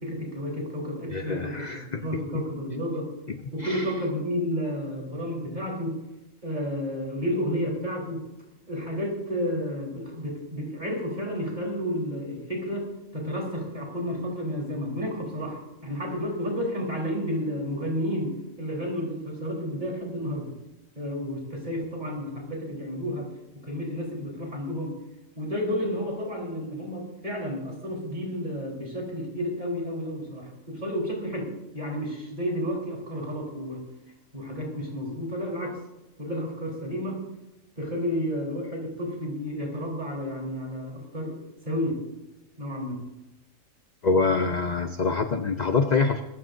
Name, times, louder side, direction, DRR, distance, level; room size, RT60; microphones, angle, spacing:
voice 1, 0.0-3.1 3.5-6.0 6.4-8.3 8.7-20.6 20.9-23.3 23.6-25.0 25.4-33.8 34.3-35.8 36.2-37.3 37.8-42.0 42.6-43.1, equal, 30° right, -1 dB, 4.1 m, -31 dB
voice 2, 1.1-2.0 3.3-3.9 44.0-46.2, left 4 dB, 40° left, 6 dB, 0.7 m, -25 dB
23.5 x 14.0 x 2.7 m, 0.98 s
omnidirectional pair, 1.4 m